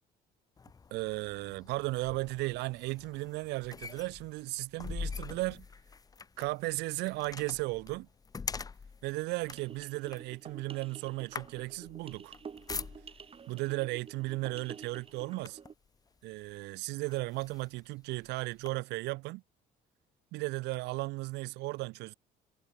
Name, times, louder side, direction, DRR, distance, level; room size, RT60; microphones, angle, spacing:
closing and locking a door, 0.6-13.4 14.2-14.4 14.8-15.9 16.5-16.6 17.0-18.7, left 5 dB, 20° left, 0.6 m, -44 dB
voice 1, 0.9-5.7 6.4-8.1 9.0-12.3 13.5-15.6 16.2-19.4 20.3-22.1, right 22 dB, 85° right, 0.5 m, -35 dB
sound 1, 9.5-15.7, right 6 dB, 35° right, 2.3 m, -49 dB
cardioid pair, 110°, 17 cm